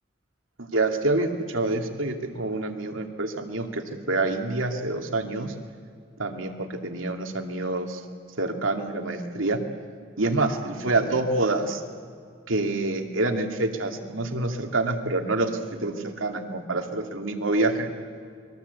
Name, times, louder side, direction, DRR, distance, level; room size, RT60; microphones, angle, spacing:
voice 1, 0.6-5.5 6.2-8.0 8.4-9.6 10.2-11.8 12.5-17.9, right 2 dB, 90° right, 5 dB, 2.6 m, -27 dB
29.5 x 22.0 x 8.3 m, 2.2 s
head